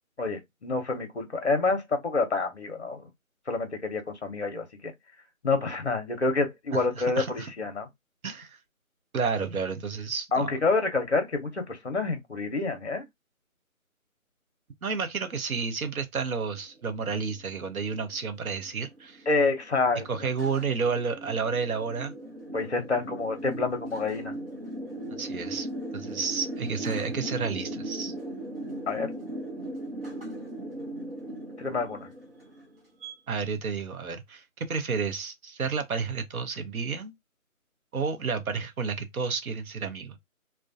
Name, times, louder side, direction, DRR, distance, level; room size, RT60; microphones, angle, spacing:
voice 1, 0.2-3.1 3.5-4.9 5.4-7.9 10.3-13.1 19.3-20.3 22.5-24.4 28.9-29.1 31.6-32.1, left 3 dB, 50° left, 0.7 m, -28 dB
voice 2, 7.0-7.5 8.2-8.6 9.1-10.5 14.8-19.3 20.1-22.1 25.2-25.7 25.9-28.1 33.3-37.1 37.9-40.2, right 5 dB, 75° right, 0.7 m, -31 dB
sound 1, 16.8-33.1, right 1 dB, 45° right, 0.8 m, -38 dB
2.4 x 2.1 x 2.5 m
figure-of-eight pair, 175°, 43 cm